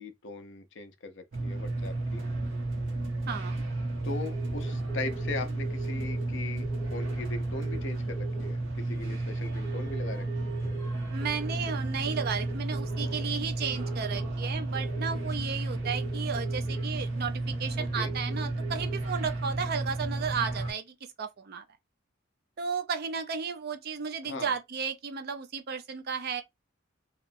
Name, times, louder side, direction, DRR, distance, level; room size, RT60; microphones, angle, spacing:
voice 1, 0.0-2.2 4.0-10.5 18.0-18.1 24.2-24.5, left 3 dB, 65° left, 0.5 m, -40 dB
sound 1, 1.3-20.7, right 2 dB, 70° right, 0.8 m, -32 dB
voice 2, 3.3-3.6 11.1-21.6 22.6-26.4, right 6 dB, 50° right, 0.5 m, -34 dB
sound 2, 4.2-6.2 6.6-7.1 7.6-8.5 9.6-10.9 11.2-13.2 13.5-14.3 14.7-15.3 15.8-16.8 17.4-19.0, right 5 dB, 15° left, 1.1 m, -44 dB
2.9 x 2.1 x 2.6 m
head